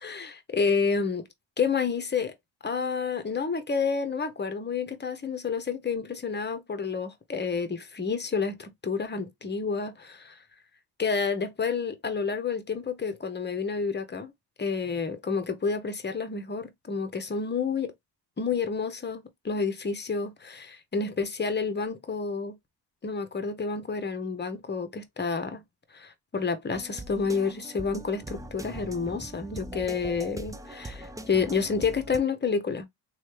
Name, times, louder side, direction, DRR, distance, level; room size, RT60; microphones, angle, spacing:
voice 1, 0.0-1.3 1.6-2.3 2.6-10.4 11.0-14.3 14.6-17.9 18.4-22.6 23.0-25.6 25.9-32.9, left 5 dB, 25° left, 0.8 m, -29 dB
sound 1, 26.7-32.2, right 1 dB, 10° right, 0.3 m, -41 dB
3.1 x 2.4 x 3.2 m
cardioid pair, 75°, 44 cm